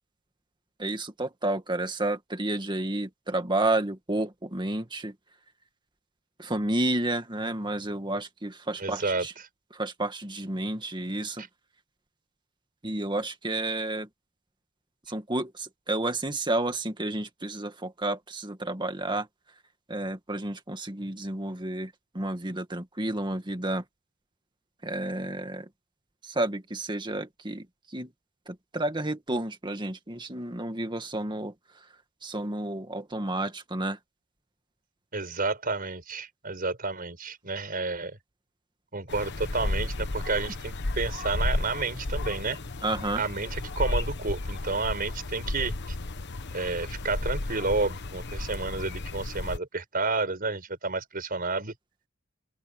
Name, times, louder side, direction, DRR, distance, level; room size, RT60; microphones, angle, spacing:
voice 1, 0.8-5.2 6.4-9.3 9.7-11.5 12.8-14.1 15.1-19.3 19.9-23.8 24.8-25.7 26.2-28.1 28.5-31.5 32.2-34.0 42.8-43.2, right 2 dB, 20° right, 2.0 m, -31 dB
voice 2, 8.8-9.3 35.1-38.2 38.9-42.6 43.2-45.7 46.5-51.7, right 3 dB, 45° right, 5.5 m, -30 dB
sound 1, 39.1-49.6, left 2 dB, 55° left, 1.1 m, -33 dB
open air
head